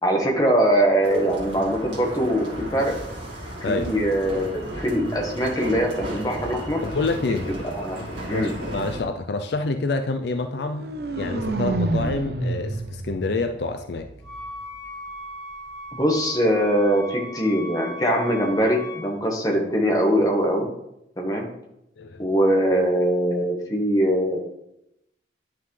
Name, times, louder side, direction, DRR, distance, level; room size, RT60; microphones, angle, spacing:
voice 1, 0.0-3.0 3.6-6.8 7.7-8.0 8.3-8.5 15.9-20.7 21.2-21.5 22.2-24.4, equal, 20° left, 0 dB, 1.3 m, -22 dB
sound 1, 1.0-9.0, right 1 dB, 80° right, 2.1 m, -35 dB
voice 2, 3.6-3.9 6.8-7.5 8.3-14.1 22.0-22.2, left 3 dB, 65° left, 7 dB, 0.4 m, -27 dB
sound 2, 10.5-14.6, right 2 dB, 55° right, 0.6 m, -29 dB
Wind instrument woodwind instrument, 14.2-19.2, equal, ahead, 1.9 m, -38 dB
9.6 x 5.8 x 3.2 m, 0.82 s
head